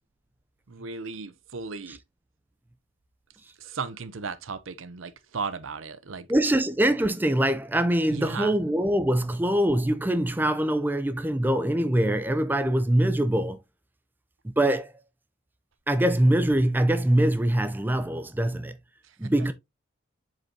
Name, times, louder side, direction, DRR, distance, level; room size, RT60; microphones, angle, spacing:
voice 1, 0.7-2.0 3.6-6.3 8.1-8.6, right 4 dB, 80° right, 0.7 m, -35 dB
voice 2, 6.3-13.6 14.4-14.9 15.9-18.8 19.2-19.5, right 1 dB, 10° right, 0.4 m, -23 dB
7.7 x 4.8 x 2.7 m
head